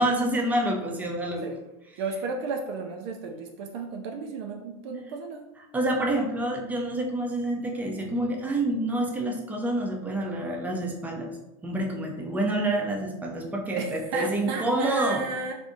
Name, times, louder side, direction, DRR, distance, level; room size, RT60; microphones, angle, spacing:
voice 1, 0.0-1.5 5.7-11.3 11.6-15.2, right 1 dB, 10° right, 0 dB, 0.5 m, -27 dB
voice 2, 2.0-5.4 13.8-15.5, right 4 dB, 65° right, 3 dB, 0.4 m, -33 dB
3.4 x 2.6 x 2.6 m, 0.97 s
supercardioid pair, 140°, 15 cm